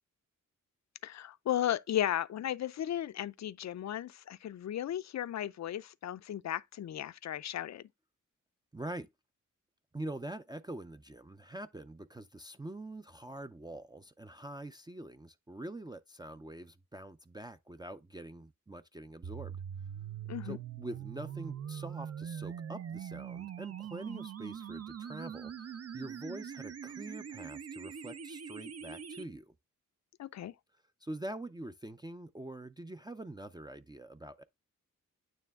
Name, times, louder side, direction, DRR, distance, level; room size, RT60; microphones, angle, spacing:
voice 1, 1.0-7.8 20.3-20.6 30.2-30.5, left 11 dB, 60° left, 0.4 m, -35 dB
voice 2, 8.7-9.1 9.9-19.6 20.4-29.5 31.0-34.4, right 1 dB, 15° right, 0.4 m, -45 dB
sound 1, 19.2-29.2, right 8 dB, 50° right, 0.6 m, -43 dB
9.1 x 3.2 x 3.5 m
wide cardioid pair, 95°, 32 cm